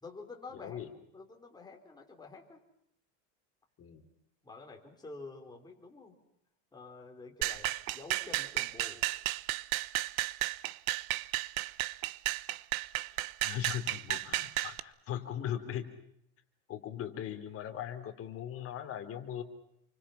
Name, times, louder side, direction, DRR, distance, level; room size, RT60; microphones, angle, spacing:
voice 1, 0.0-0.8 1.1-2.6 4.4-6.2 6.7-9.0, left 3 dB, 10° left, 1 dB, 4.6 m, -49 dB
voice 2, 0.5-0.9 3.8-4.0 13.4-15.9 16.7-19.4, left 10 dB, 35° left, 6 dB, 3.6 m, -39 dB
sound 1, 7.4-14.8, right 17 dB, 90° right, 1.1 m, -33 dB
29.5 x 25.0 x 5.9 m, 0.76 s
cardioid pair, 155°, 41 cm